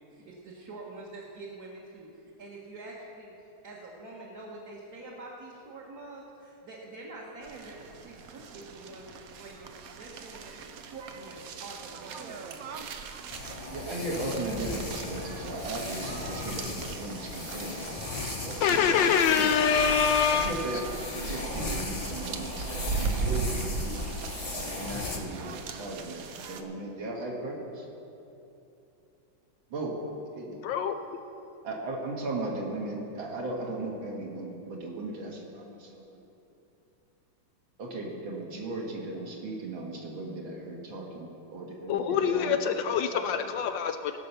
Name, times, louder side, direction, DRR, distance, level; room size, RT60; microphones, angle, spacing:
voice 1, 0.0-2.1 2.4-3.3 3.6-9.7 10.0-12.9, right 2 dB, 50° right, -5 dB, 1.7 m, -46 dB
sound 1, 7.4-26.6, right 5 dB, 80° right, 0.7 m, -38 dB
sound 2, 13.3-25.2, left 2 dB, 40° left, 0.5 m, -37 dB
voice 2, 13.7-18.0 18.4-19.9 20.3-24.0 24.5-27.9 29.7-29.9 30.3-30.6 31.6-36.2 37.8-42.8 43.1-43.5, right 2 dB, 65° right, -1 dB, 2.5 m, -37 dB
voice 3, 18.6-20.6 30.6-31.0 41.9-44.1, left 7 dB, 75° left, 7 dB, 1.1 m, -25 dB
19.0 x 6.8 x 5.6 m, 2.9 s
omnidirectional pair, 2.4 m